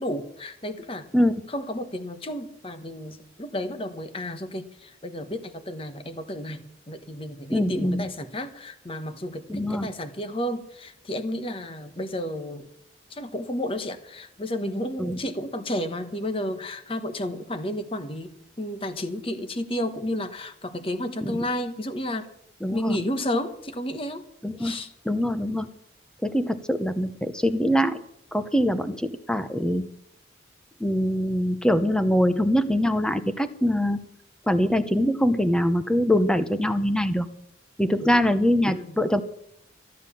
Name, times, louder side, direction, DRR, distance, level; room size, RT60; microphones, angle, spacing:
voice 1, 0.0-1.1 1.5-12.7 13.1-22.3 22.7-24.3 24.6-24.9 38.0-38.2 38.6-39.0, left 1 dB, 30° left, 10 dB, 1.2 m, -32 dB
voice 2, 7.5-8.0 9.5-9.9 15.0-15.2 21.3-21.4 22.6-23.0 24.4-24.7 25.1-25.7 26.2-28.0 28.3-29.8 30.8-34.0 34.5-37.3 37.8-39.2, equal, 5° left, 10 dB, 0.8 m, -23 dB
14.0 x 9.5 x 7.1 m, 0.75 s
head